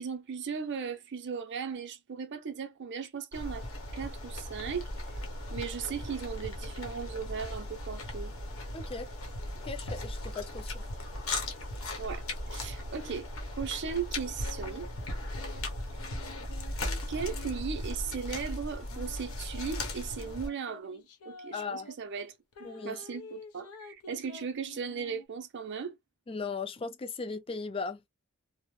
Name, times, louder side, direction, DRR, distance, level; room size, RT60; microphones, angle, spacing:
voice 1, 0.0-3.7 3.9-4.9 5.5-8.3 12.0-12.2 12.5-13.3 13.5-14.9 17.1-22.3 22.6-25.9, right 6 dB, 55° right, 0.5 m, -37 dB
sound 1, 3.3-20.5, left 1 dB, 65° left, 0.8 m, -37 dB
voice 2, 8.7-9.1 9.6-10.8 21.5-21.9 22.6-23.0 26.3-28.0, left 4 dB, 25° left, 0.4 m, -37 dB
sound 2, 14.2-14.8 15.4-18.3 18.9-22.0 22.5-25.3, left 3 dB, 90° left, 0.5 m, -50 dB
2.4 x 2.0 x 3.0 m
head